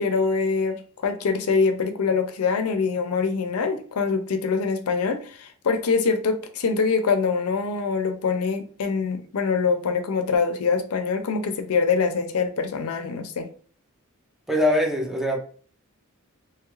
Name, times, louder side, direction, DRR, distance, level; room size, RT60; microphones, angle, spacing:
voice 1, 0.0-13.5, left 5 dB, 80° left, 8 dB, 0.5 m, -24 dB
voice 2, 14.5-15.4, left 1 dB, ahead, 0 dB, 0.5 m, -22 dB
2.9 x 2.4 x 3.0 m, 0.43 s
head